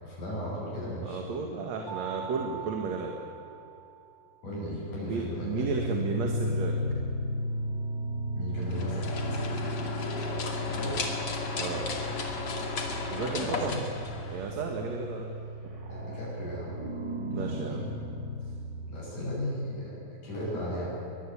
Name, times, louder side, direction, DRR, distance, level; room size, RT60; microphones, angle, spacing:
voice 1, 0.0-1.2 4.4-5.8 8.3-9.0 10.7-11.0 13.4-13.9 15.9-16.7 17.3-17.8 18.9-20.0 20.2-20.9, left 1 dB, 80° left, -5 dB, 8.3 m, -36 dB
voice 2, 1.0-3.1 5.1-6.7 11.6-11.9 13.1-13.8 14.3-15.3 17.3-17.9, right 4 dB, 65° right, 2 dB, 2.9 m, -33 dB
Mallet percussion, 1.9-4.4, right 10 dB, 30° left, 4.0 m, -42 dB
sound 1, 5.0-19.6, equal, 85° right, 5.5 m, -35 dB
sound 2, 8.6-14.8, left 4 dB, 50° left, 3.1 m, -35 dB
22.5 x 22.5 x 8.7 m, 2.7 s
omnidirectional pair, 3.5 m